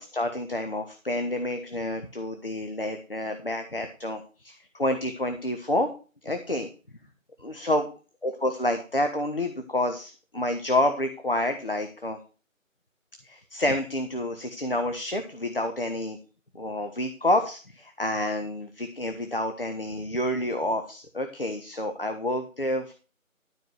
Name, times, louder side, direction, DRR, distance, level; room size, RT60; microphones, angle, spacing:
voice 1, 0.0-5.9 6.2-6.7 7.4-7.9 8.2-12.2 13.2-16.2 16.5-22.9, left 1 dB, 40° left, 6 dB, 1.2 m, -28 dB
12.5 x 5.0 x 6.3 m, 0.35 s
figure-of-eight pair, 180°, 41 cm